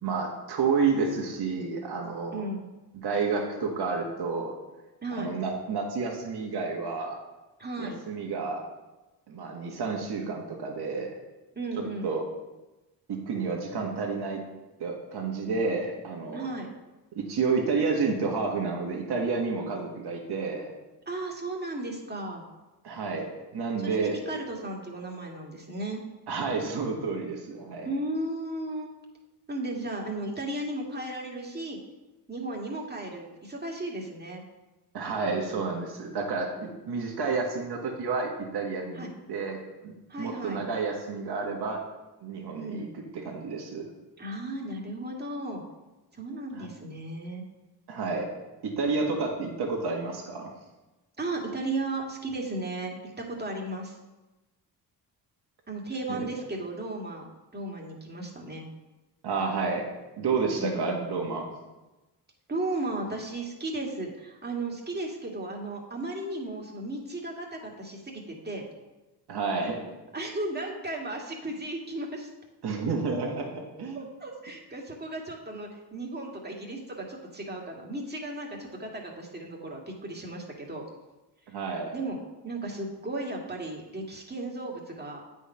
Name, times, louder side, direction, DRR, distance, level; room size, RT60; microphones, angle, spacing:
voice 1, 0.0-2.4 2.9-4.5 5.1-7.2 7.8-8.6 9.3-11.2 12.0-12.2 13.1-14.4 14.8-16.5 17.1-20.7 22.8-23.3 23.5-24.2 26.3-27.9 34.9-39.0 39.3-39.6 39.8-41.8 42.2-43.8 46.5-46.7 47.9-48.3 48.6-50.5 56.1-56.3 59.2-59.9 60.2-61.5 69.3-69.8 72.6-74.1 81.5-81.9, right 4 dB, 70° right, 1 dB, 1.6 m, -30 dB
voice 2, 2.3-2.7 5.0-5.3 7.6-8.0 11.6-12.1 16.3-16.7 21.1-22.4 23.8-26.0 27.8-28.9 29.5-31.8 32.3-34.4 39.0-39.1 40.1-40.6 42.6-43.0 44.2-45.6 46.1-47.4 51.2-54.0 55.7-58.7 60.6-61.1 62.5-68.7 70.1-72.3 73.9-80.8 81.9-82.2 82.4-85.2, right 2 dB, 25° right, 0 dB, 2.0 m, -35 dB
8.4 x 4.5 x 5.6 m, 1.1 s
cardioid pair, 70°, 41 cm